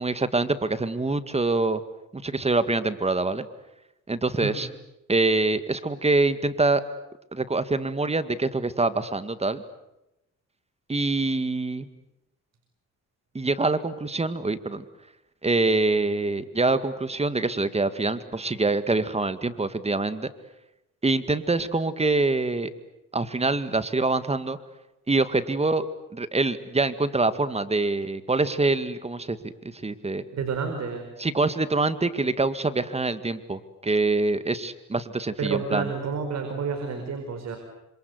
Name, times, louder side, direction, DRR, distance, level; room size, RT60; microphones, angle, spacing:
voice 1, 0.0-1.8 2.1-3.5 4.1-4.7 5.1-6.8 7.3-9.6 10.9-11.9 13.3-14.8 15.4-20.3 21.0-22.7 23.1-24.6 25.1-25.9 26.1-29.5 29.8-30.2 31.2-35.9, right 3 dB, 20° right, 12 dB, 1.9 m, -25 dB
voice 2, 30.3-31.1 35.4-37.6, right 5 dB, 60° right, 5 dB, 4.8 m, -30 dB
27.5 x 26.5 x 8.1 m, 0.90 s
cardioid pair, 90°, 30 cm